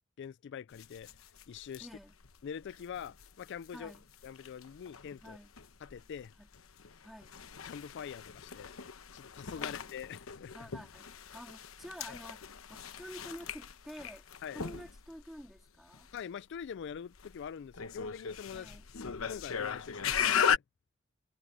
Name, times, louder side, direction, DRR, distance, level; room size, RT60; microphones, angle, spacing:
voice 1, 0.2-1.1 1.5-1.9 2.4-3.9 4.2-5.4 5.8-6.3 7.6-8.8 9.1-10.7 12.1-12.2 14.4-14.6 16.1-20.6, left 7 dB, 60° left, 0.3 m, -44 dB
sound 1, 0.7-20.6, left 7 dB, 80° left, 1.0 m, -38 dB
voice 2, 1.8-2.1 3.7-4.0 5.2-5.5 6.4-6.5 7.0-7.4 9.6-9.8 10.5-14.3 14.5-16.1 18.5-18.8, equal, ahead, 3.6 m, -49 dB
head